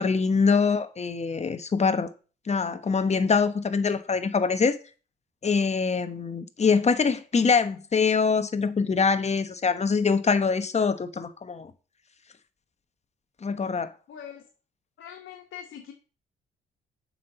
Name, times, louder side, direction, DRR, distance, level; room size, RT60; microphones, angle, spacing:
voice 1, 0.0-2.1 2.5-4.8 5.4-11.7 13.4-13.9, left 5 dB, 35° left, 1.1 m, -24 dB
voice 2, 14.1-14.5 15.0-15.9, left 9 dB, 70° left, 1.7 m, -42 dB
7.4 x 5.8 x 6.7 m
cardioid pair, 90°, 20 cm